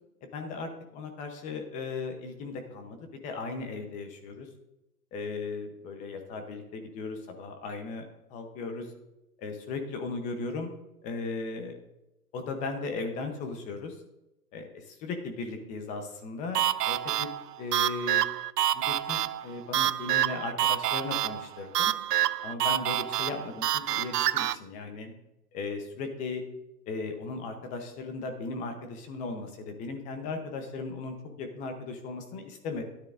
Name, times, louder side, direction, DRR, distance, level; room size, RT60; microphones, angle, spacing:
voice 1, 0.2-3.0 3.2-4.5 5.1-8.9 9.4-10.7 11.0-11.7 12.3-13.9 14.5-17.3 17.6-18.2 18.7-21.9 22.4-25.1 25.5-26.4 26.9-32.8, left 3 dB, 15° left, 5 dB, 0.7 m, -37 dB
sound 1, 16.5-24.6, right 12 dB, 75° right, 0.5 m, -28 dB
12.5 x 9.7 x 2.5 m, 0.93 s
hypercardioid pair, 140°, 48 cm